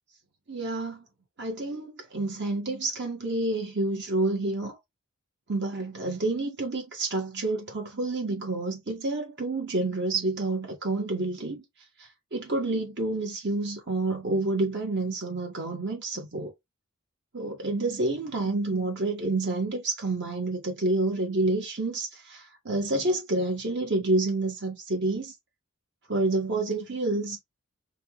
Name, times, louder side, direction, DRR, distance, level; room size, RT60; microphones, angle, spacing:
voice 1, 0.5-1.1 1.4-4.7 5.5-11.6 12.0-16.5 17.3-25.3 26.1-27.4, right 2 dB, 50° right, 1.3 m, -29 dB
5.6 x 2.3 x 3.0 m
head